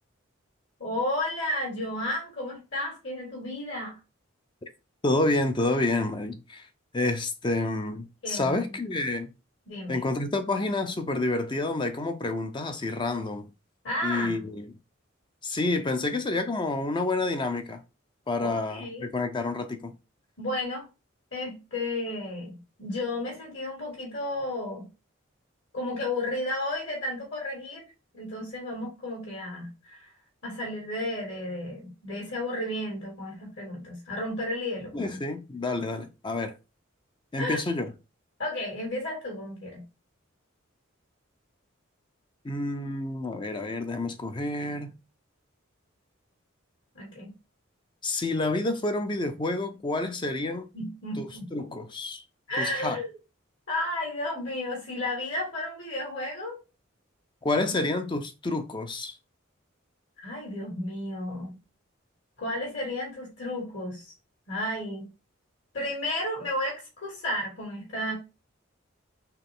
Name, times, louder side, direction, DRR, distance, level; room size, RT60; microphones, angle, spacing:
voice 1, 0.8-4.0 8.2-8.8 9.7-10.0 13.8-14.4 18.4-19.0 20.4-20.9 21.3-24.9 25.7-27.8 28.1-30.1 30.4-35.2 37.4-37.6 38.4-39.8 46.9-47.3 50.7-51.4 52.5-53.1 53.7-56.6 60.2-61.5 62.4-64.1 64.5-65.1 65.7-68.1, left 1 dB, 60° left, 2.1 m, -33 dB
voice 2, 5.0-6.7 6.9-9.3 9.9-13.5 14.0-14.6 15.4-17.8 18.3-19.9 34.9-36.5 37.3-37.9 42.4-44.9 48.0-50.7 51.2-51.3 51.5-52.2 52.6-53.0 57.4-59.2, left 2 dB, 25° left, 0.5 m, -29 dB
4.5 x 3.3 x 3.5 m
head